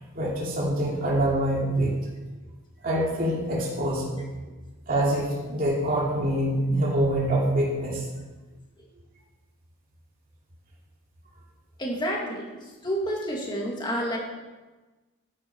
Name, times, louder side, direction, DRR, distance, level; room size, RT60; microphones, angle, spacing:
voice 1, 0.1-1.9 2.8-4.2 4.9-8.0, right 1 dB, 40° right, -5 dB, 2.7 m, -25 dB
voice 2, 11.8-14.2, equal, 20° left, -2 dB, 2.2 m, -29 dB
11.0 x 10.5 x 4.7 m, 1.2 s
head